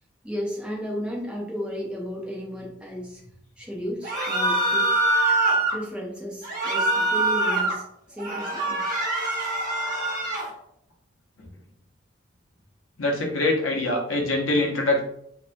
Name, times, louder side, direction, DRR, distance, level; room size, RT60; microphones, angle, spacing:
voice 1, 0.2-3.2 3.6-5.0 5.7-8.8, equal, 5° right, -3 dB, 0.5 m, -34 dB
sound 1, 4.0-5.8 6.4-7.8 8.2-10.5, right 2 dB, 45° right, 0.7 m, -24 dB
voice 2, 13.0-15.0, left 2 dB, 90° left, 0 dB, 0.7 m, -24 dB
2.8 x 2.1 x 2.5 m, 0.72 s
head